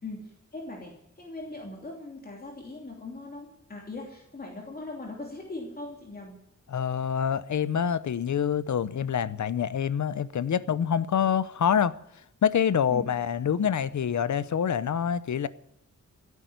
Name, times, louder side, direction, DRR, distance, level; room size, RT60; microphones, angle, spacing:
voice 1, 0.0-6.4 12.9-13.1, left 2 dB, 30° left, 3.0 m, -40 dB
voice 2, 6.7-11.9 12.4-15.5, left 8 dB, 75° left, 0.8 m, -26 dB
16.0 x 8.3 x 9.4 m
wide cardioid pair, 130°, 29 cm